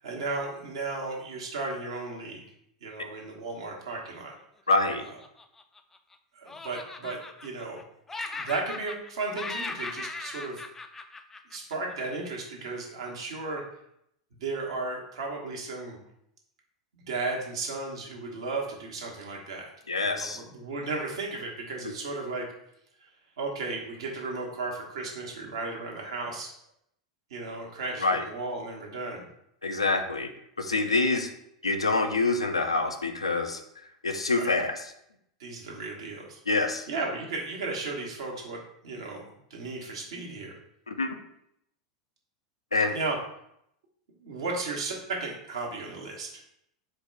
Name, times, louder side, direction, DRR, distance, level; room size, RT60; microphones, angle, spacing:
voice 1, 0.0-2.4 2.8-4.3 6.3-7.8 8.3-10.6 11.5-13.6 14.4-16.0 17.0-19.7 20.0-22.4 23.4-26.5 27.3-29.2 34.3-34.5 35.4-36.4 36.9-40.6 42.9-43.2 44.2-46.4, right 3 dB, 65° right, -1 dB, 1.1 m, -35 dB
voice 2, 4.7-5.0 19.9-20.4 28.0-28.2 29.6-30.3 30.6-31.3 31.6-33.6 34.0-34.8 36.5-36.9 40.9-41.1 42.7-43.0, left 3 dB, 85° left, 6 dB, 0.5 m, -26 dB
Laughter, 4.9-6.1 6.5-7.8 8.1-9.1 9.3-11.9, left 3 dB, 10° left, 0.3 m, -38 dB
4.5 x 2.2 x 4.6 m, 0.75 s
figure-of-eight pair, 90°, 3 cm